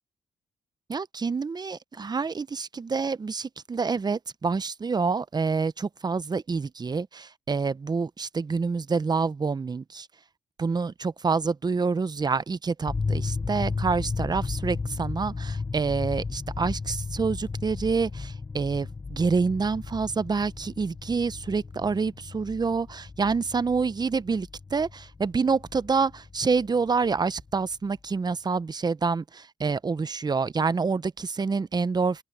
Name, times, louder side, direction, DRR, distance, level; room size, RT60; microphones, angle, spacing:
voice 1, 0.9-10.1 10.6-32.2, right 4 dB, 30° right, 0.8 m, -27 dB
sound 1, 12.9-27.7, left 4 dB, 25° left, 0.9 m, -34 dB
open air
cardioid pair, 70°, 13 cm